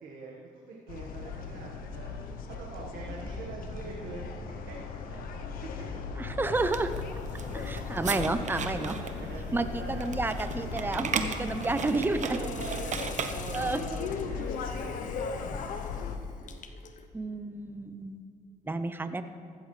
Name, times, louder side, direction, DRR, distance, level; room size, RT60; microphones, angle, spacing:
voice 1, 0.0-2.1 2.6-4.4 4.7-5.2 7.4-7.6 8.6-10.1 10.9-11.1 11.5-15.6, right 3 dB, 80° right, -3 dB, 1.5 m, -43 dB
sound 1, 0.9-16.2, left 5 dB, 90° left, 0.8 m, -37 dB
voice 2, 6.2-6.9 7.5-9.0 9.5-12.4 13.5-13.8 17.1-18.2 18.7-19.2, right 2 dB, 15° right, 10 dB, 0.6 m, -30 dB
sound 2, 6.6-13.7, right 6 dB, 55° right, 0.9 m, -37 dB
Hiss, 11.3-17.1, left 6 dB, 60° left, 0.9 m, -48 dB
15.0 x 12.5 x 3.3 m, 2.3 s
cardioid pair, 80°, 14 cm